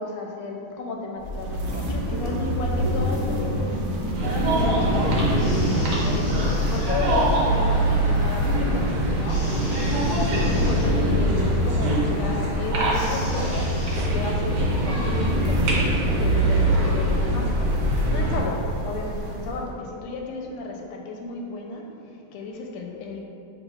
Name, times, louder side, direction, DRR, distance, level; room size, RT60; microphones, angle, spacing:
voice 1, 0.0-9.6 10.2-13.8 14.1-23.2, left 3 dB, 85° left, 1 dB, 1.5 m, -34 dB
sound 1, 1.2-19.7, equal, 90° right, 1.5 m, -31 dB
sound 2, 4.2-18.4, right 1 dB, 70° right, 1.5 m, -23 dB
sound 3, 5.3-7.6 9.3-10.9 12.9-14.0, left 2 dB, 60° left, 1.1 m, -42 dB
5.7 x 3.6 x 2.3 m, 2.6 s
omnidirectional pair, 2.3 m